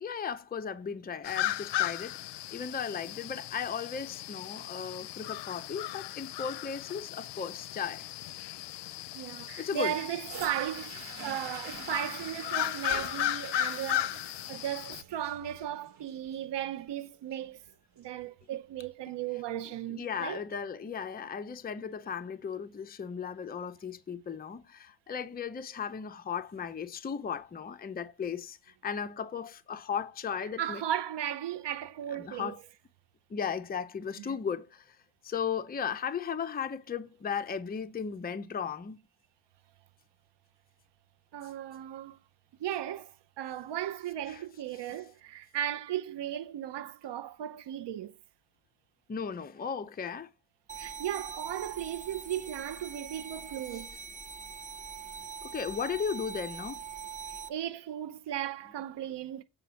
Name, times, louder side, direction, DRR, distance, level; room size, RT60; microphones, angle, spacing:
voice 1, 0.0-8.1 9.6-9.9 19.9-30.8 32.2-32.6 33.3-35.0 35.2-39.0 44.3-44.4 44.9-45.0 49.1-50.3 53.7-53.8 55.4-56.8, left 7 dB, 20° left, 0.6 m, -36 dB
sound 1, 1.2-15.0, left 13 dB, 75° left, 0.6 m, -36 dB
voice 2, 9.1-17.6 18.0-20.4 30.6-32.5 34.2-34.3 41.3-42.2 42.6-43.1 43.4-48.1 50.7-54.0 57.3-59.4, right 11 dB, 75° right, 0.7 m, -36 dB
sound 2, 10.2-18.2 19.0-19.1, right 4 dB, 40° right, 3.3 m, -48 dB
sound 3, 50.7-57.5, right 6 dB, 20° right, 0.9 m, -43 dB
8.9 x 5.1 x 5.6 m
wide cardioid pair, 150°, 42 cm